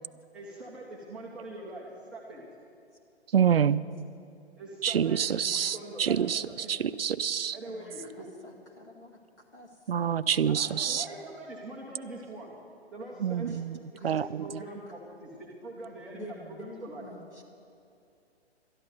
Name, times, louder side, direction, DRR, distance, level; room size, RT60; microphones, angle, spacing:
voice 1, 0.3-2.4 4.6-6.7 7.5-8.3 10.5-12.5 12.9-13.5 13.9-17.1, right 2 dB, 5° right, -7 dB, 0.4 m, -43 dB
voice 2, 3.3-3.8 4.8-6.4 6.7-7.6 9.9-11.0 13.2-13.8 14.0-14.3, right 8 dB, 60° right, 16 dB, 0.4 m, -26 dB
voice 3, 8.2-9.2 9.5-9.7 13.1-13.6 14.0-14.1 16.1-17.4, left 1 dB, 85° left, -1 dB, 2.3 m, -48 dB
12.5 x 11.0 x 6.8 m, 2.6 s
figure-of-eight pair, 125°, 33 cm